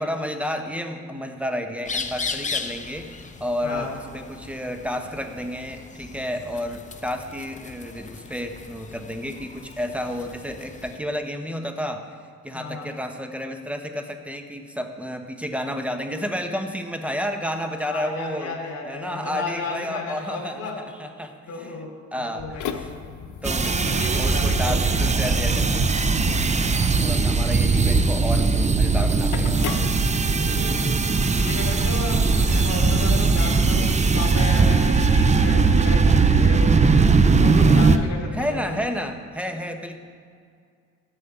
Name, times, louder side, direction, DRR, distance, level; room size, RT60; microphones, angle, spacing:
voice 1, 0.0-12.0 12.4-18.6 18.8-21.8 22.1-22.9 23.4-23.8 24.1-25.8 26.6-29.9 38.3-40.0, equal, 5° right, 5 dB, 1.2 m, -31 dB
sound 1, 1.8-11.0, left 4 dB, 25° left, 0.8 m, -37 dB
voice 2, 12.5-12.9 17.8-20.8 21.5-21.9 22.3-23.0 23.8-25.3 26.6-26.9 30.4-31.0 31.4-37.0 37.4-38.6, left 3 dB, 55° left, -3 dB, 3.1 m, -33 dB
sound 2, 22.4-30.6, left 7 dB, 75° left, 0.9 m, -37 dB
sound 3, 23.4-38.0, right 4 dB, 25° right, 0.6 m, -19 dB
12.5 x 5.6 x 8.1 m, 2.2 s
cardioid pair, 90°, 30 cm